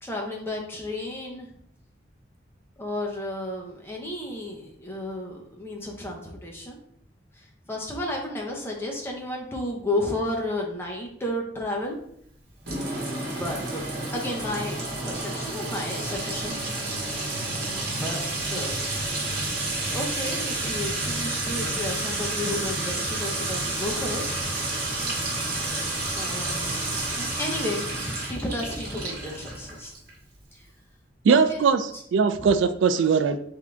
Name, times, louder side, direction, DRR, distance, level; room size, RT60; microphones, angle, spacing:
voice 1, 0.0-1.5 2.8-6.8 7.3-12.0 13.1-16.6 17.7-18.8 19.1-24.8 26.1-29.9 30.5-30.7 31.3-31.6 31.9-32.0 32.4-32.6, left 1 dB, 10° left, -1 dB, 0.7 m, -33 dB
Sink (filling or washing) / Trickle dribble / Fill (with liquid), 12.7-30.1, right 2 dB, 55° right, 1.3 m, -30 dB
voice 2, 31.2-33.4, right 5 dB, 75° right, 10 dB, 0.3 m, -21 dB
3.7 x 3.6 x 3.3 m, 0.69 s
head